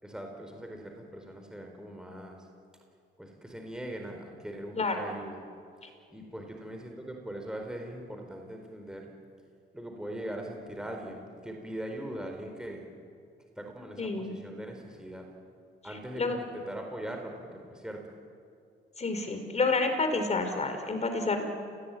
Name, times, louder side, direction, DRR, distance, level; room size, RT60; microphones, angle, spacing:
voice 1, 0.0-2.5 3.2-5.4 5.8-9.1 9.7-12.9 13.6-15.3 15.8-18.0, right 1 dB, 5° right, 2 dB, 4.5 m, -41 dB
voice 2, 14.0-14.4 16.2-16.4 19.0-21.4, left 3 dB, 35° left, 6 dB, 4.9 m, -29 dB
29.5 x 19.0 x 9.3 m, 2.4 s
cardioid pair, 90°, 20 cm